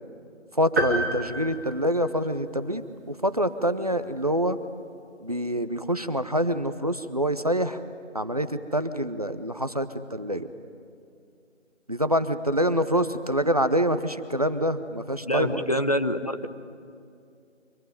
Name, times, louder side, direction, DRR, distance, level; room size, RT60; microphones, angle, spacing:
voice 1, 0.5-4.6 5.2-7.8 8.1-10.5 11.9-15.7, equal, 30° right, 11 dB, 0.8 m, -26 dB
sound 1, 0.8-2.5, right 1 dB, 15° right, 1.8 m, -29 dB
voice 2, 15.2-16.5, equal, 30° left, 9 dB, 0.9 m, -26 dB
25.0 x 23.5 x 9.4 m, 2.4 s
figure-of-eight pair, 165°, 38 cm